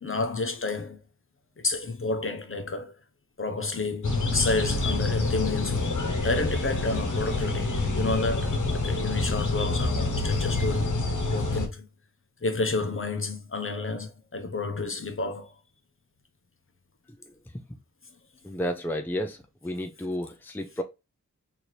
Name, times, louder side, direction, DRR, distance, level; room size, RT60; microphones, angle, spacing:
voice 1, 0.0-1.0 1.6-2.9 3.4-5.9 6.2-10.9 11.3-11.9 12.4-15.5, left 3 dB, 40° left, 0.8 m, -30 dB
sound 1, 4.0-11.7, left 3 dB, 70° left, 1.0 m, -27 dB
voice 2, 18.4-19.4 19.6-20.8, equal, 5° left, 0.5 m, -31 dB
4.4 x 2.8 x 3.2 m
wide cardioid pair, 90°, 31 cm